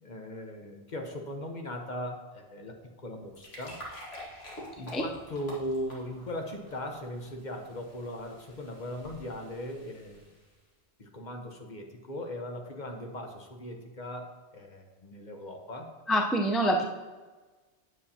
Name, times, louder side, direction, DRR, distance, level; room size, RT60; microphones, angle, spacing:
voice 1, 0.0-3.8 4.8-10.3 11.0-15.9, left 1 dB, 45° left, 3 dB, 1.0 m, -39 dB
sound 1, 3.1-10.6, equal, 70° left, 2.1 m, -48 dB
voice 2, 16.1-16.8, equal, ahead, 1 dB, 0.4 m, -25 dB
9.4 x 7.1 x 2.8 m, 1.3 s
omnidirectional pair, 1.1 m